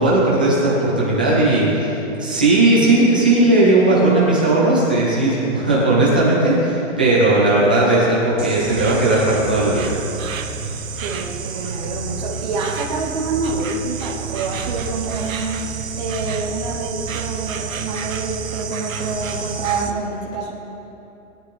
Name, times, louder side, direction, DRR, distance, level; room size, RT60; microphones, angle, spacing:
voice 1, 0.0-1.9 2.2-10.0, right 2 dB, 5° right, -7 dB, 0.5 m, -16 dB
Insect, 8.4-19.9, right 6 dB, 75° right, 1.2 m, -29 dB
voice 2, 11.0-15.6 16.0-20.5, right 3 dB, 30° right, -3 dB, 1.1 m, -27 dB
20.0 x 10.0 x 3.6 m, 3.0 s
hypercardioid pair, 175°, 41 cm